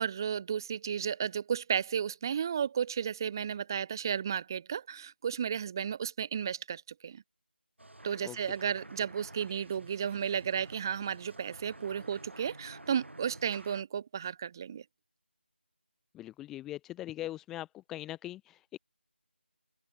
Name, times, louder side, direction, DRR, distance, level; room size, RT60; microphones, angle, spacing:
voice 1, 0.0-7.2 8.0-14.8, right 8 dB, 20° right, 1.7 m, -33 dB
sound 1, 7.8-13.8, right 1 dB, 85° right, 4.5 m, -50 dB
voice 2, 16.1-18.8, left 14 dB, 5° left, 0.7 m, -41 dB
open air
figure-of-eight pair, 170°, 6 cm